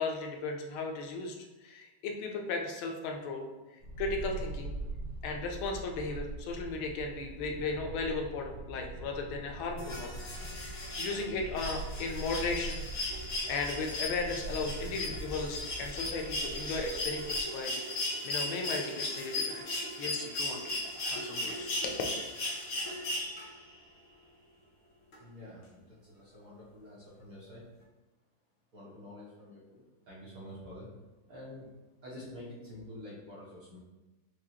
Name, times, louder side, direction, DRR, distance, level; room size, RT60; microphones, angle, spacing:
voice 1, 0.0-3.5 4.0-4.8 5.2-10.2 10.5-13.1 13.5-17.8 18.2-20.6 21.0-21.9, left 3 dB, 85° left, 2 dB, 1.4 m, -36 dB
sound 1, 3.8-17.4, right 2 dB, 80° right, 1.3 m, -42 dB
sound 2, 9.8-23.7 25.1-25.2, left 2 dB, 70° left, 0.7 m, -37 dB
voice 2, 25.2-27.6 28.7-30.9 31.3-31.7 32.0-33.8, left 1 dB, 60° right, -7 dB, 1.0 m, -48 dB
4.7 x 2.3 x 2.8 m, 1.1 s
omnidirectional pair, 2.2 m